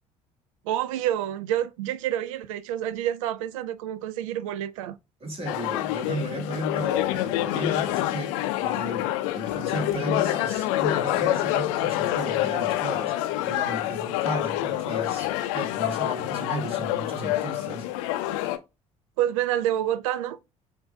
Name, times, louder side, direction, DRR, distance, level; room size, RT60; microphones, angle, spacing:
voice 1, 0.7-5.0 19.2-20.4, right 12 dB, 70° right, 0.4 m, -28 dB
voice 2, 5.2-17.9, right 1 dB, 35° right, 2.3 m, -35 dB
sound 1, 5.5-18.6, left 14 dB, 65° left, 0.5 m, -27 dB
7.6 x 2.7 x 2.2 m
figure-of-eight pair, 55°, 18 cm